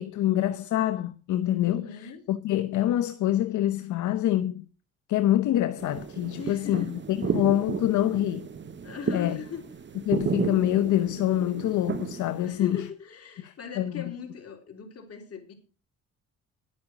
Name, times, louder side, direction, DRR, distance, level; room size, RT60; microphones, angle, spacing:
voice 1, 0.0-1.9 2.3-4.7 5.1-8.5 9.1-9.4 10.1-12.8 13.4-14.1, left 13 dB, 75° left, 0.8 m, -26 dB
voice 2, 1.6-2.3 6.4-7.4 8.8-10.0 12.4-15.5, left 6 dB, 55° left, 3.5 m, -40 dB
sound 1, 5.8-12.9, right 6 dB, 40° right, 1.0 m, -33 dB
11.0 x 8.6 x 6.0 m
cardioid pair, 90°, 30 cm